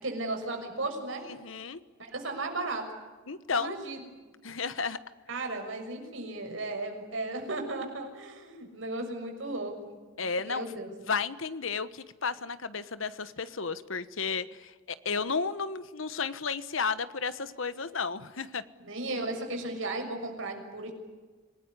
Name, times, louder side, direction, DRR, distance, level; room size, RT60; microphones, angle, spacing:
voice 1, 0.0-1.2 2.0-2.8 3.5-4.0 5.3-10.0 10.4-10.9 18.8-20.9, right 2 dB, 65° right, 3 dB, 6.6 m, -35 dB
voice 2, 1.3-1.8 3.3-3.8 4.4-5.0 10.2-10.6 11.1-18.6, left 5 dB, 70° left, 14 dB, 1.3 m, -33 dB
27.0 x 19.5 x 9.8 m, 1.3 s
head